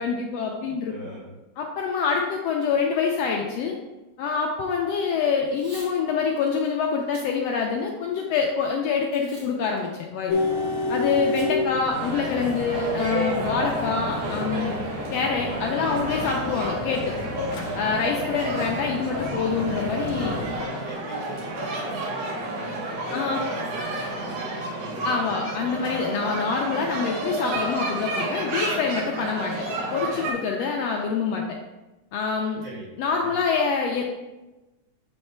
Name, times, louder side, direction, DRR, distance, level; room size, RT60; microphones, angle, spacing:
voice 1, 0.0-0.9 1.6-3.7 4.2-10.3 10.9-14.8 15.1-17.0 17.7-20.4 23.1-23.4 25.0-29.5 29.9-31.4 32.1-32.6 33.0-34.0, left 5 dB, 80° left, 0 dB, 1.5 m, -26 dB
voice 2, 0.9-1.3 13.4-13.6 20.1-25.9 32.6-32.9 33.1-33.4, right 1 dB, 55° right, -6 dB, 3.5 m, -40 dB
Packing tape duct tape / Tearing, 5.5-5.9 6.4-6.5 7.0-7.3 7.8-8.4 9.1-9.5 9.8-9.9 11.4-11.5 11.9-12.0 12.3-12.6, right 1 dB, 40° right, 1.2 m, -45 dB
sound 1, 10.3-20.6, left 2 dB, 60° left, 1.6 m, -31 dB
sound 2, 11.9-30.3, right 1 dB, 85° right, 2.6 m, -31 dB
8.0 x 3.3 x 4.3 m, 1.1 s
omnidirectional pair, 3.5 m